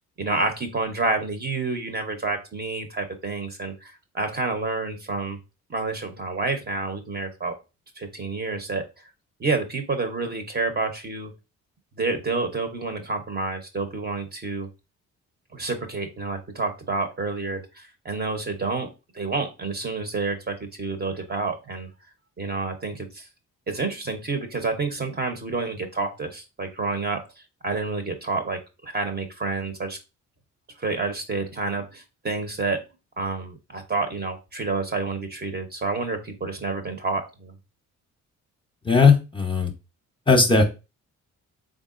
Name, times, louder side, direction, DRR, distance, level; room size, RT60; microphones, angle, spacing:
voice 1, 0.2-5.4 5.7-7.5 8.0-8.8 9.4-11.3 12.0-14.7 15.5-18.9 19.1-21.9 22.4-23.3 23.7-27.2 27.6-30.0 30.8-32.8 33.2-37.5, right 3 dB, 35° right, 6 dB, 0.8 m, -29 dB
voice 2, 38.9-39.7 40.3-40.6, left 4 dB, 15° left, 3 dB, 0.7 m, -17 dB
3.7 x 3.5 x 2.5 m, 0.28 s
cardioid pair, 90°, 30 cm